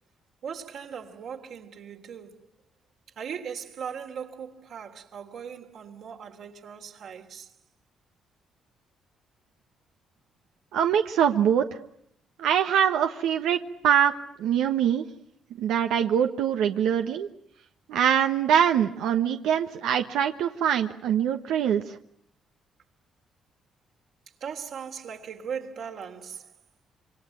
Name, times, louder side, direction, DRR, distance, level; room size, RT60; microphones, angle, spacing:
voice 1, 0.4-2.5 3.1-7.5 24.4-26.5, right 7 dB, 70° right, 3.3 m, -39 dB
voice 2, 10.7-11.8 12.4-15.0 15.6-17.3 17.9-22.0, right 9 dB, 90° right, 1.2 m, -23 dB
26.5 x 24.0 x 9.1 m
cardioid pair, 90°, 0 cm